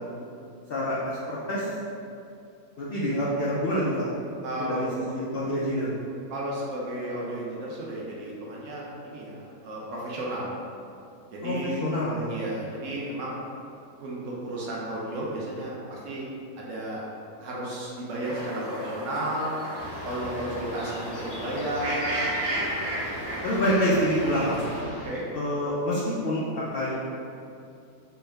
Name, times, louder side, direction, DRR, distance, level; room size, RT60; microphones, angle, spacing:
voice 1, 0.7-1.7 2.8-4.0 4.6-4.9 5.1-5.9 11.4-12.3 23.4-24.6 25.3-26.9, equal, 85° left, -7 dB, 0.5 m, -27 dB
voice 2, 4.4-4.9 6.3-10.5 11.3-11.8 12.3-13.4 14.0-16.3 16.6-17.0 17.4-19.6 20.0-22.1 25.0-25.3, right 1 dB, 65° right, -5 dB, 0.9 m, -33 dB
sound 1, 18.2-24.8, right 1 dB, 80° right, 1.3 m, -34 dB
sound 2, 19.8-25.1, left 1 dB, 45° left, 0.7 m, -40 dB
4.5 x 2.1 x 3.3 m, 2.5 s
omnidirectional pair, 1.6 m